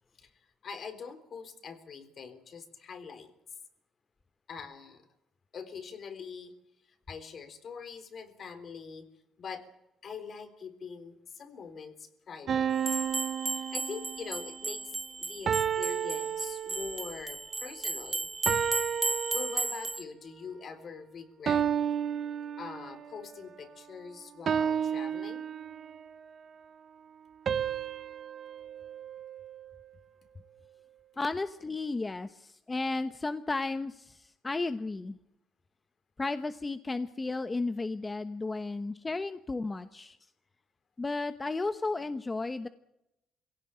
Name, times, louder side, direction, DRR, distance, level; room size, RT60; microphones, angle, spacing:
voice 1, 0.6-3.3 4.5-5.0 5.5-6.6 6.9-9.0 9.4-9.6 10.0-12.7 13.5-14.8 15.2-18.3 19.3-21.7 22.6-25.5, left 6 dB, 55° left, 10 dB, 3.7 m, -43 dB
sound 1, 12.5-14.4 15.5-17.1 18.5-20.0 21.5-23.1 24.5-26.1 27.5-29.8, right 8 dB, 55° right, 1.1 m, -32 dB
sound 2, 12.8-20.0, right 3 dB, 25° right, 1.0 m, -35 dB
voice 2, 31.2-35.2 36.2-40.2 41.0-42.7, left 3 dB, 25° left, 10 dB, 1.0 m, -33 dB
23.5 x 17.0 x 9.1 m, 0.89 s
cardioid pair, 90°, 0 cm